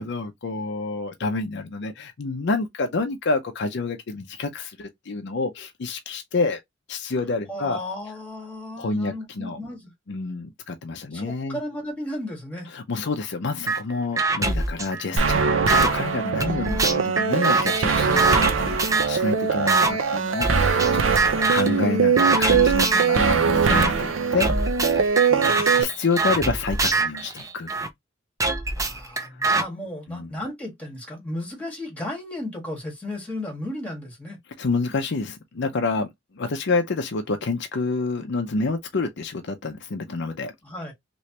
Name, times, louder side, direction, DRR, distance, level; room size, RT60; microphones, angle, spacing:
voice 1, 0.0-6.6 6.9-7.8 8.8-9.6 10.1-11.6 12.7-18.8 19.1-21.0 21.5-24.5 25.5-27.7 30.1-30.3 34.6-36.1 36.3-40.5, left 3 dB, 60° left, 0.6 m, -28 dB
voice 2, 7.5-9.9 11.1-12.7 16.4-16.6 21.3-21.6 25.3-25.6 28.8-34.4 40.6-40.9, left 1 dB, 5° left, 1.6 m, -34 dB
sound 1, 13.7-13.8 14.2-15.9 16.4-19.2 19.7-19.9 20.4-20.9 21.2-21.8 22.2-23.2 23.7-23.9 24.4-27.9 28.4-29.6, right 3 dB, 15° right, 0.5 m, -23 dB
sound 2, 15.2-25.8, right 5 dB, 90° right, 0.6 m, -22 dB
3.2 x 3.0 x 2.9 m
head